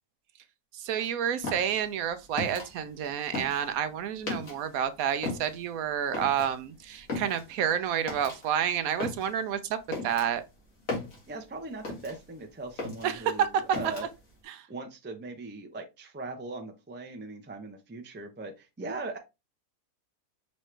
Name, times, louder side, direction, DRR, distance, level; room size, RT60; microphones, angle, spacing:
voice 1, 0.7-9.8 10.0-10.4 13.0-13.9 14.5-14.7, right 9 dB, 75° right, 1.0 m, -29 dB
sound 1, 1.4-4.8 5.1-12.4 12.7-14.3, left 3 dB, 65° left, 2.1 m, -38 dB
voice 2, 11.3-14.1 14.7-19.2, right 2 dB, 20° right, 0.3 m, -40 dB
5.4 x 3.1 x 3.2 m
omnidirectional pair, 1.6 m